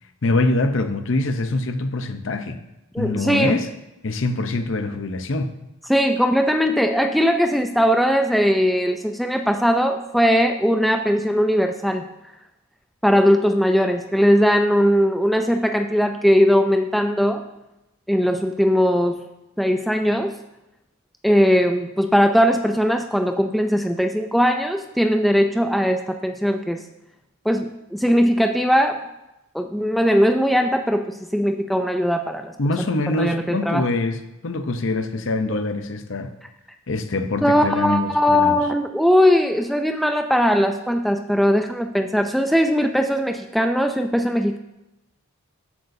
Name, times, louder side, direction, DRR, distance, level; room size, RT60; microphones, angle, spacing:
voice 1, 0.2-2.6 3.0-3.7 4.0-5.6 32.6-36.3 36.9-38.6, left 2 dB, 55° left, 8 dB, 0.7 m, -24 dB
voice 2, 2.9-3.6 5.9-12.1 13.0-17.4 18.1-19.2 19.6-20.3 21.2-26.8 27.5-29.0 29.5-32.5 33.1-33.9 37.4-44.6, equal, ahead, 5 dB, 0.3 m, -19 dB
13.0 x 8.0 x 2.7 m, 0.95 s
head